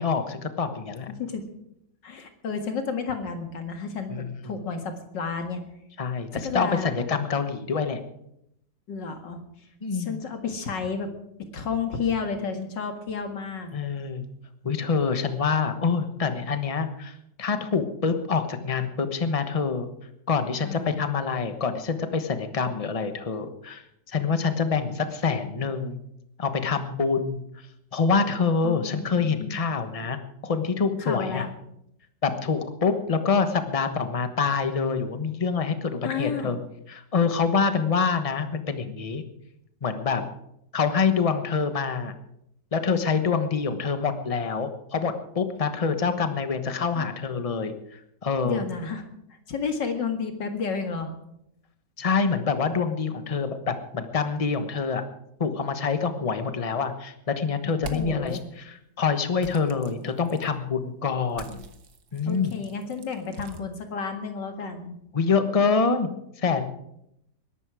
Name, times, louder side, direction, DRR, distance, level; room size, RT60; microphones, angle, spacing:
voice 1, 0.0-1.1 4.1-4.4 6.0-8.0 9.8-10.2 13.7-14.2 14.6-19.9 20.3-26.0 26.4-27.4 27.9-31.5 32.2-36.6 36.9-39.2 39.8-40.2 40.7-42.1 42.7-48.6 52.0-55.0 55.4-61.6 62.1-62.6 65.1-66.1 66.4-66.7, left 5 dB, 25° left, 8 dB, 1.0 m, -26 dB
voice 2, 1.1-1.5 2.0-5.6 6.3-6.9 8.9-9.4 9.9-11.1 11.5-13.7 20.6-21.0 28.6-29.6 31.0-31.5 36.0-36.6 47.0-47.1 48.4-49.0 49.5-51.1 57.9-58.4 62.3-65.0, left 5 dB, 85° left, 6 dB, 2.6 m, -31 dB
sound 1, 57.7-58.4 59.4-60.5 61.3-63.6, right 5 dB, 60° right, 1.8 m, -44 dB
21.0 x 12.0 x 4.9 m, 0.79 s
omnidirectional pair, 1.9 m